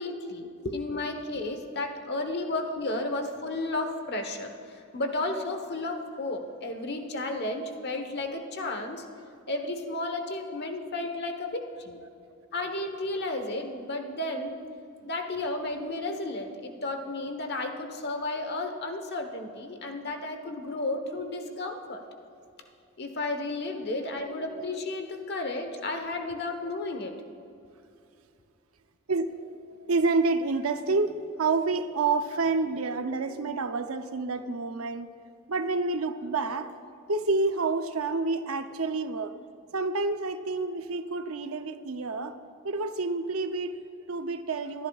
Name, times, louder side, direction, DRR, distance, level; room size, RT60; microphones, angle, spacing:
voice 1, 0.0-9.0 9.5-12.0 12.5-14.6 15.0-22.0 23.0-27.1, left 2 dB, 55° left, 5 dB, 1.2 m, -33 dB
voice 2, 5.4-5.7 12.0-12.1 12.6-12.7 24.5-25.1 26.6-26.8 29.1-35.1 35.5-36.7 37.1-39.3 39.7-42.3 42.6-44.9, right 3 dB, 85° right, 9 dB, 0.7 m, -29 dB
23.5 x 11.0 x 2.4 m, 2.6 s
head